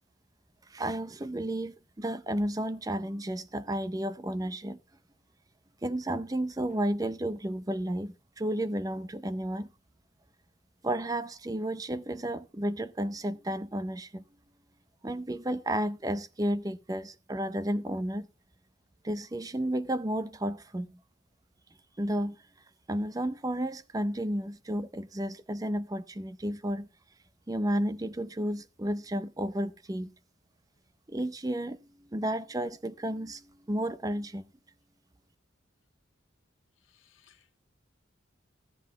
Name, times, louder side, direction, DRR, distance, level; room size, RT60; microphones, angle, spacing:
voice 1, 0.7-4.8 5.8-9.7 10.8-14.2 15.0-18.3 19.0-21.0 22.0-22.4 22.9-26.9 27.5-30.1 31.1-34.4, right 1 dB, 20° right, 0.5 m, -32 dB
voice 2, 36.9-37.6, left 10 dB, 85° left, 1.6 m, -64 dB
14.0 x 7.8 x 3.9 m
head